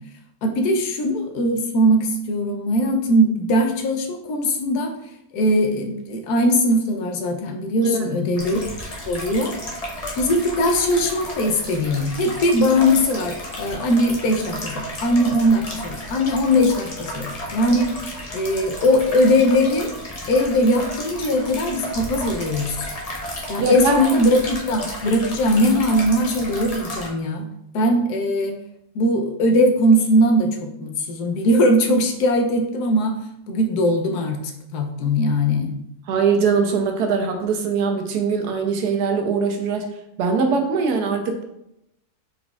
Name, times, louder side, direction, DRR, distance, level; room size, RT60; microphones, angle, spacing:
voice 1, 0.4-4.9 5.3-8.6 9.1-9.6 10.2-19.9 20.3-22.9 23.5-28.6 28.9-33.2 33.5-35.8, equal, 85° left, 4 dB, 1.2 m, -20 dB
sound 1, 8.3-27.1, left 1 dB, 40° left, 0.6 m, -33 dB
voice 2, 23.6-24.0 36.1-39.9 40.2-41.4, right 5 dB, 85° right, 4 dB, 1.2 m, -21 dB
4.4 x 3.9 x 2.3 m, 0.81 s
omnidirectional pair, 1.6 m